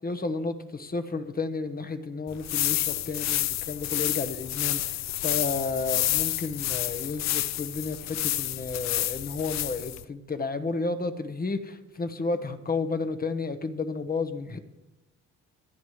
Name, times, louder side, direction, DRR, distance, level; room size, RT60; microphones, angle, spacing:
voice 1, 0.0-14.6, left 4 dB, 30° left, 8 dB, 1.2 m, -32 dB
sound 1, 2.3-10.0, left 13 dB, 60° left, 0.5 m, -29 dB
25.5 x 9.4 x 3.3 m, 1.0 s
cardioid pair, 90°, 30 cm